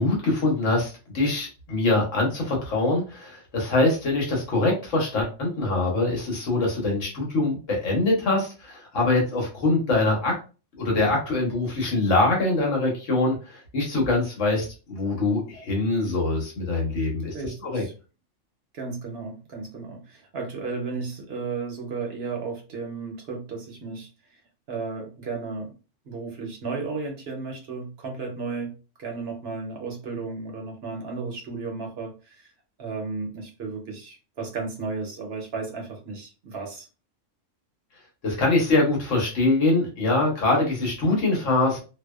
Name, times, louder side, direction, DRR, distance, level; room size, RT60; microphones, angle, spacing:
voice 1, 0.0-10.4 10.8-17.8 38.2-41.8, left 2 dB, 75° left, -1 dB, 1.3 m, -24 dB
voice 2, 17.3-17.9 18.7-24.1 24.7-25.7 26.1-28.7 29.0-32.5 32.8-36.9, right 4 dB, 60° right, 1 dB, 0.8 m, -34 dB
2.6 x 2.1 x 2.2 m, 0.33 s
omnidirectional pair, 1.3 m